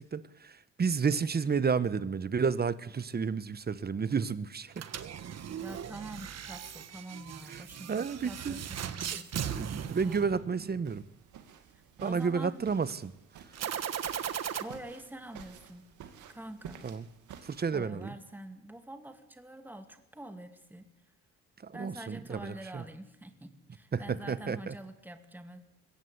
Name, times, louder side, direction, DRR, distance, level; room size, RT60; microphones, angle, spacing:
voice 1, 0.0-4.8 7.5-7.6 7.9-8.6 9.5-11.0 12.0-13.1 16.8-17.1 17.4-18.1 21.6-22.8 23.9-24.7, right 5 dB, 30° right, 15 dB, 1.0 m, -31 dB
sound 1, 4.7-10.9 13.5-14.6, right 9 dB, 55° right, 1.4 m, -38 dB
voice 2, 5.6-9.6 12.0-12.7 14.6-15.9 16.3-16.8 17.7-20.9 21.7-25.6, right 1 dB, 5° right, 6 dB, 2.3 m, -46 dB
sound 2, 10.9-17.7, right 8 dB, 80° right, 2.5 m, -52 dB
22.0 x 16.5 x 8.2 m, 0.88 s
cardioid pair, 90°, 30 cm